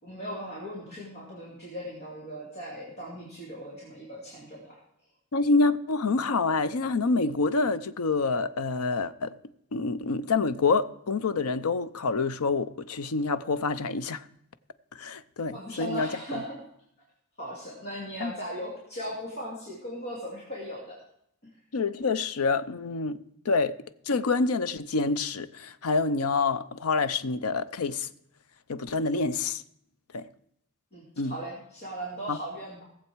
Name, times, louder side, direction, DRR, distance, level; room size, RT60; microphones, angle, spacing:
voice 1, 0.0-4.8 15.5-16.6 17.4-21.0 21.4-21.5 30.9-32.8, equal, 45° left, 2.6 m, -38 dB
voice 2, 5.3-9.3 9.7-14.2 14.9-16.4 18.2-18.3 21.7-23.2 23.4-23.8 24.1-28.1 28.7-29.6 30.1-30.3 31.2-31.4 32.3-32.4, left 4 dB, 80° left, 0.6 m, -27 dB
18.0 x 7.5 x 4.6 m
head